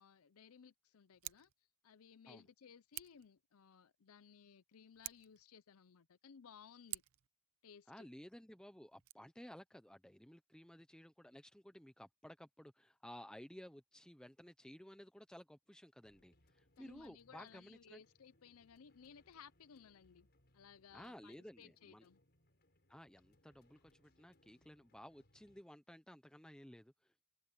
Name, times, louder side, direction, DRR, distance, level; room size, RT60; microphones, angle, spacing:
voice 1, 0.0-1.5 1.8-7.0 7.6-8.1 16.8-20.3 20.5-22.2, left 7 dB, 80° left, 0.6 m, -60 dB
Scissors, 1.1-1.5 2.9-3.3 4.9-5.4 6.9-7.3 8.9-9.1, right 17 dB, 75° right, 0.7 m, -48 dB
voice 2, 7.9-18.0 20.9-22.1 22.9-27.2, equal, 5° left, 0.7 m, -56 dB
sound 1, 16.0-25.6, left 1 dB, 50° left, 5.6 m, -74 dB
open air
head